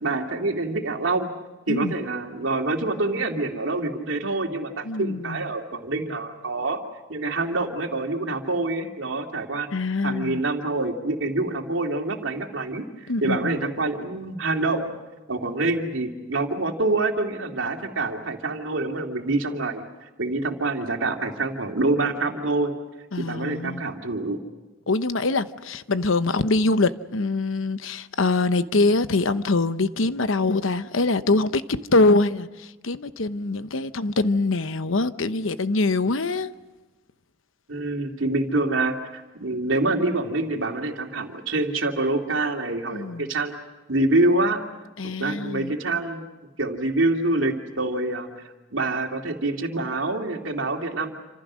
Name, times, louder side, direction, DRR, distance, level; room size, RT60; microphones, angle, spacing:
voice 1, 0.0-1.3 1.7-6.8 7.1-9.7 10.0-15.0 15.3-19.8 20.2-22.7 23.2-24.4 37.7-43.5 43.9-44.6 45.0-46.2 46.6-48.4 48.7-51.1, right 2 dB, 75° right, 2.8 m, -26 dB
voice 2, 4.8-5.4 9.7-10.4 13.1-13.6 23.1-23.9 24.9-36.5 42.9-43.3 45.0-45.7, left 3 dB, 80° left, 0.9 m, -24 dB
28.0 x 26.5 x 6.3 m
head